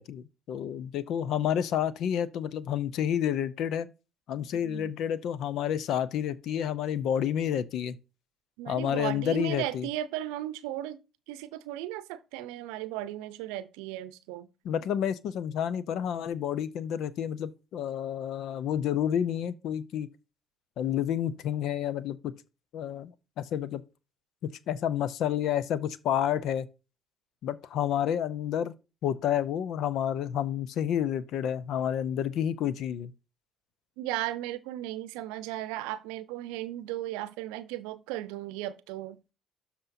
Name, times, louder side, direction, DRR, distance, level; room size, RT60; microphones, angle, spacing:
voice 1, 0.0-3.9 4.3-8.0 8.7-9.9 14.6-20.1 20.8-22.3 22.7-23.8 24.7-26.7 27.4-28.7 29.0-33.1, left 9 dB, 65° left, 0.6 m, -30 dB
voice 2, 4.5-5.0 8.6-11.0 11.3-14.5 34.0-39.2, right 14 dB, 75° right, 0.7 m, -36 dB
13.0 x 4.3 x 2.7 m
hypercardioid pair, 55°, 0 cm